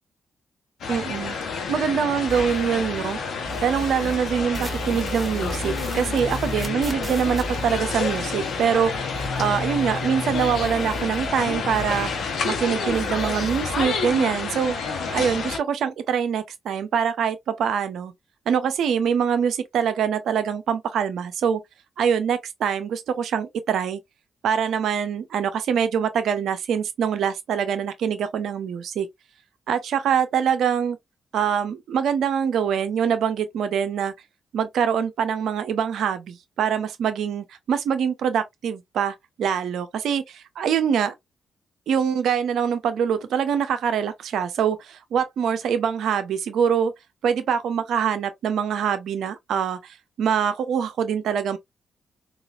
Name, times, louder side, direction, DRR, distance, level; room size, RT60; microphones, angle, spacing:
sound 1, 0.8-15.6, left 5 dB, 70° left, 0.9 m, -29 dB
voice 1, 0.9-1.4 1.7-8.9 9.4-12.1 12.4-14.8 15.1-18.1 18.5-21.6 22.0-24.0 24.4-29.1 29.7-31.0 31.3-34.1 34.5-41.1 41.9-46.9 47.2-51.6, right 7 dB, 70° right, 0.7 m, -24 dB
sound 2, 2.3-3.2 3.4-10.0 10.3-12.6 12.9-13.9, right 2 dB, 25° right, 1.6 m, -36 dB
sound 3, 6.2-13.7, left 5 dB, 50° left, 0.4 m, -37 dB
3.9 x 2.5 x 2.4 m
hypercardioid pair, 40°, 0 cm